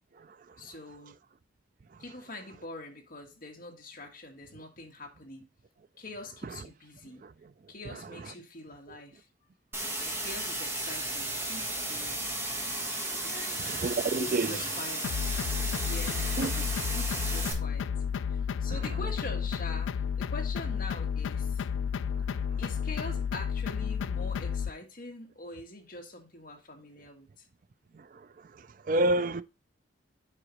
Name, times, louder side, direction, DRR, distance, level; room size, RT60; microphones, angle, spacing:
voice 1, 0.6-1.2 2.0-5.5 6.0-7.2 7.7-9.3 9.9-12.5 13.2-13.6 14.2-15.1 15.8-16.5 16.9-17.9 18.3-21.6 22.6-27.5, left 2 dB, 45° left, 1.5 m, -44 dB
sound 1, 9.7-17.5, right 1 dB, 10° right, 1.3 m, -34 dB
voice 2, 13.6-14.5 16.4-16.5 28.9-29.4, right 2 dB, 45° right, 0.4 m, -27 dB
sound 2, 15.0-24.7, left 7 dB, 80° left, 0.3 m, -32 dB
7.5 x 5.0 x 3.0 m
head